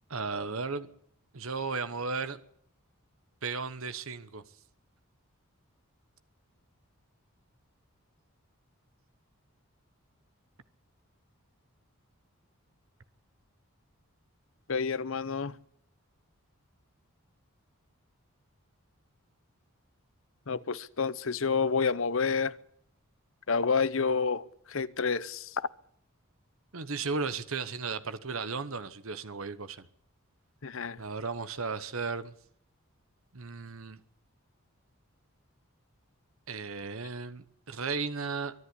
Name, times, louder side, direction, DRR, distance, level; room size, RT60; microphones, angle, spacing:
voice 1, 0.1-0.9 1.3-2.4 3.4-4.4 26.7-29.8 31.0-32.3 33.3-34.0 36.5-38.5, right 4 dB, 70° right, 1.1 m, -35 dB
voice 2, 14.7-15.5 20.5-22.5 23.5-25.7 30.6-31.0, left 5 dB, 65° left, 0.8 m, -29 dB
24.0 x 11.5 x 9.7 m
head